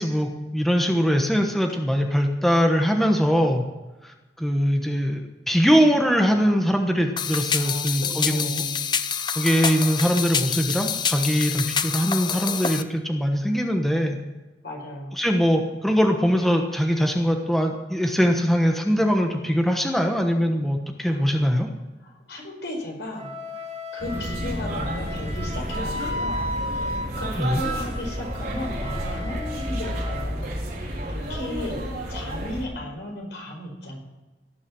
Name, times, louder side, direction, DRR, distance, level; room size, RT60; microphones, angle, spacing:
voice 1, 0.0-3.6 4.4-8.5 9.4-14.2 15.2-21.7 27.4-27.6, equal, ahead, 3 dB, 1.1 m, -22 dB
sound 1, 7.2-12.8, left 7 dB, 25° left, 0.6 m, -27 dB
voice 2, 7.5-8.9 14.6-15.2 21.1-21.6 22.0-23.3 23.9-26.5 27.2-30.9 31.3-34.0, left 1 dB, 85° left, 0 dB, 5.1 m, -35 dB
Wind instrument woodwind instrument, 23.2-30.3, equal, 40° right, 2.3 m, -34 dB
sound 2, 24.0-32.7, equal, 55° right, 4.1 m, -31 dB
17.0 x 7.3 x 7.6 m, 1.1 s
head